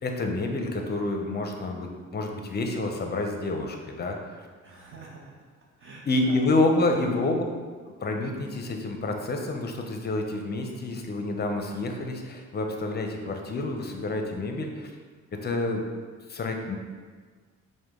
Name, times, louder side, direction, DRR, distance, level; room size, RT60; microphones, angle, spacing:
voice 1, 0.0-4.3 6.1-7.4 7.9-14.9 15.3-15.8 16.3-16.8, left 2 dB, 35° left, 3 dB, 0.6 m, -28 dB
voice 2, 4.6-5.4 5.8-6.8 7.4-7.5, right 3 dB, 45° right, -3 dB, 0.8 m, -45 dB
4.8 x 2.2 x 3.6 m, 1.5 s
cardioid pair, 90°, 30 cm